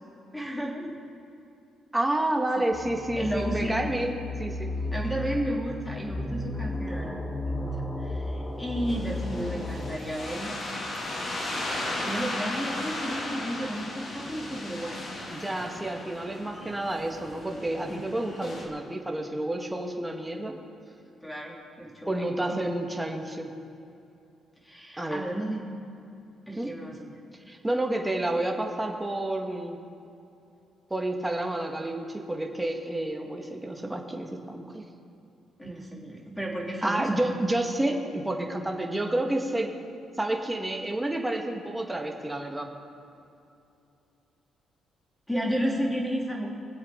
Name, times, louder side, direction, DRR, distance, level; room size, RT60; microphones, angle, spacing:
voice 1, 0.3-0.9 3.2-3.8 4.9-7.7 8.0-10.6 11.8-15.0 17.9-18.1 21.2-22.6 24.6-25.7 26.5-27.2 35.6-37.2 45.3-46.5, equal, 10° left, -2 dB, 2.9 m, -33 dB
voice 2, 1.9-4.7 15.3-20.5 22.0-23.5 25.0-25.3 26.6-26.7 27.5-29.8 30.9-34.8 36.8-39.7 40.2-42.7, right 1 dB, 10° right, 2 dB, 1.7 m, -30 dB
sound 1, 2.7-10.0, left 1 dB, 25° left, 1.3 m, -33 dB
sound 2, 8.9-18.7, left 1 dB, 50° left, 2.6 m, -36 dB
23.0 x 8.1 x 3.9 m, 2.7 s
cardioid pair, 90°, 0 cm